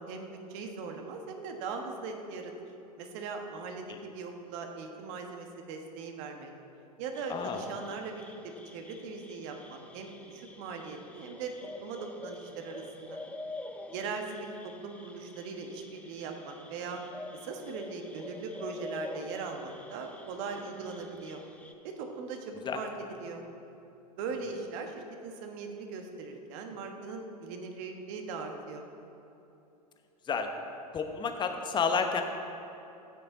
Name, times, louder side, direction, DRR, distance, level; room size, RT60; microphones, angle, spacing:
voice 1, 0.0-2.5 3.0-6.5 7.0-11.5 11.8-13.2 13.9-17.0 17.4-21.4 21.8-23.4 24.2-28.9, right 4 dB, 50° right, 4 dB, 1.4 m, -40 dB
sound 1, 7.1-21.7, left 2 dB, 5° left, 0.8 m, -47 dB
voice 2, 7.3-7.6 22.6-22.8 30.3-30.5 30.9-32.2, left 5 dB, 20° left, 5 dB, 1.1 m, -30 dB
14.0 x 8.9 x 4.0 m, 2.9 s
figure-of-eight pair, 90°, 20 cm